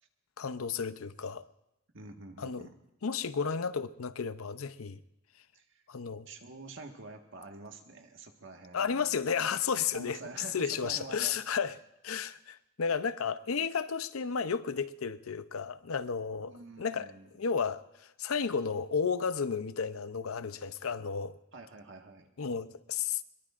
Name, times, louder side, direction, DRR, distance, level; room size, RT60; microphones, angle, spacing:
voice 1, 0.4-1.5 2.4-2.7 3.0-5.0 5.9-6.3 8.7-10.2 10.5-11.8 12.0-21.4 22.4-23.2, left 6 dB, 85° left, 0.6 m, -33 dB
voice 2, 1.9-2.8 5.5-5.8 6.3-9.2 9.9-11.4 16.4-17.3 21.5-22.3, right 3 dB, 65° right, 1.6 m, -47 dB
22.5 x 22.0 x 2.5 m
head